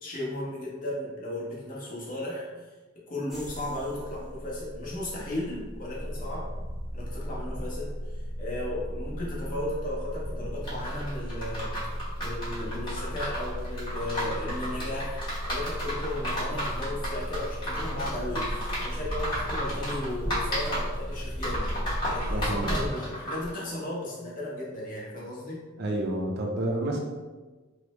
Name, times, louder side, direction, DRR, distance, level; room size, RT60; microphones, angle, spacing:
voice 1, 0.0-2.5 3.1-6.5 6.9-11.8 12.2-15.2 15.5-21.8 22.1-25.7, left 1 dB, 45° left, -4 dB, 0.8 m, -35 dB
sound 1, 3.3-22.9, equal, ahead, 0.6 m, -35 dB
sound 2, 10.6-23.5, equal, 25° left, 1.1 m, -34 dB
voice 2, 22.3-22.7 25.8-27.0, right 1 dB, 55° right, 0 dB, 0.5 m, -29 dB
3.2 x 2.0 x 3.0 m, 1.3 s
head